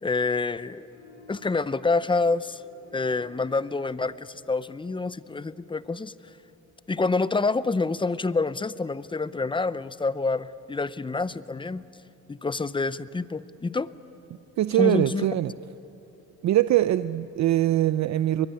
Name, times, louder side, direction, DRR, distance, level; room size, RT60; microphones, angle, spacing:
voice 1, 0.0-0.9 1.3-2.6 2.9-6.1 6.9-11.8 12.3-13.9 14.8-15.2, left 3 dB, 15° left, 17 dB, 0.6 m, -27 dB
sound 1, 0.9-7.8, equal, 85° left, 6.8 m, -56 dB
voice 2, 14.6-15.5 16.4-18.5, right 13 dB, 65° right, 14 dB, 0.6 m, -22 dB
22.0 x 21.5 x 9.7 m, 2.8 s
cardioid pair, 90°, 30 cm